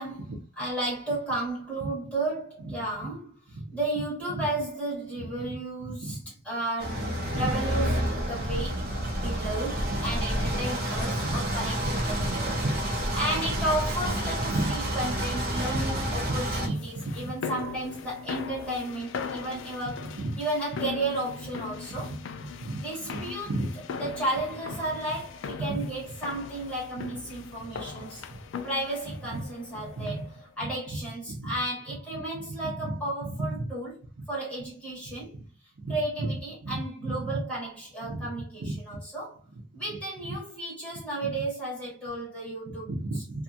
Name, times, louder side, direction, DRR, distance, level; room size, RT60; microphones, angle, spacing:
voice 1, 0.6-3.3 3.7-7.1 7.3-8.8 9.2-12.6 13.1-22.1 22.8-23.5 24.0-28.2 28.6-30.3 30.6-34.0 34.3-35.4 35.9-39.4 39.7-42.9, right 1 dB, 5° left, 1.4 m, -33 dB
voice 2, 3.5-3.8 4.3-4.5 5.2-5.6 5.8-6.2 7.2-7.5 8.3-8.9 9.9-11.5 11.8-12.3 12.6-12.7 14.5-14.7 16.2-17.3 20.2-20.4 21.9-23.7 25.6-25.9 27.9-28.4 29.1-29.4 29.8-30.3 30.6-30.7 31.3-31.6 32.3-33.7 34.2-34.3 35.1-35.3 35.8-36.3 36.6-37.4 38.0-38.3 38.6-38.7 39.5-39.6 39.9-40.0 41.2-41.3 42.7-43.4, right 2 dB, 80° right, 0.6 m, -35 dB
sound 1, 6.8-16.7, right 1 dB, 50° right, 0.7 m, -29 dB
sound 2, 16.5-30.4, left 6 dB, 70° left, 0.4 m, -40 dB
2.7 x 2.4 x 2.6 m
head